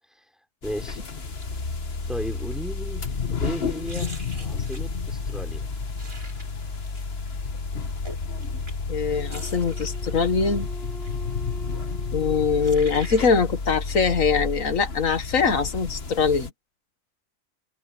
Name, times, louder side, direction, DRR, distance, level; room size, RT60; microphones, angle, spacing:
sound 1, 0.6-16.5, left 4 dB, 50° left, 1.8 m, -31 dB
voice 1, 0.6-1.0 2.1-3.1 3.4-5.7, equal, ahead, 5.1 m, -35 dB
sound 2, 1.4-1.7 2.1-3.3 3.7-4.9 5.9-7.1 7.9-11.1 12.2-12.3 12.6-13.7 13.9-14.1, right 1 dB, 20° right, 6.4 m, -44 dB
voice 2, 8.9-10.7 12.1-16.5, left 5 dB, 90° left, 2.1 m, -22 dB
Wind instrument woodwind instrument, 9.1-13.6, right 1 dB, 45° right, 7.7 m, -44 dB
omnidirectional pair, 1.4 m